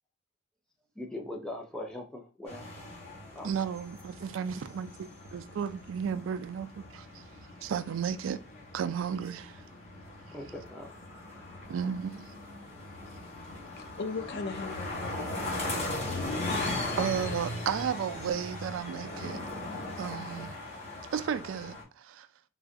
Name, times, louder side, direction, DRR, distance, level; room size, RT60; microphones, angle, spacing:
voice 1, 1.0-2.6 3.2-3.5 10.3-10.9, left 1 dB, 5° left, 0.6 m, -40 dB
sound 1, 2.4-21.8, left 2 dB, 35° left, 1.3 m, -39 dB
voice 2, 3.4-7.2 7.6-8.4 8.7-9.6 11.7-12.3 17.0-19.4 20.0-20.5 21.1-22.3, right 7 dB, 80° right, 0.3 m, -33 dB
voice 3, 13.8-15.8, left 4 dB, 60° left, 0.4 m, -38 dB
3.9 x 2.4 x 2.5 m
head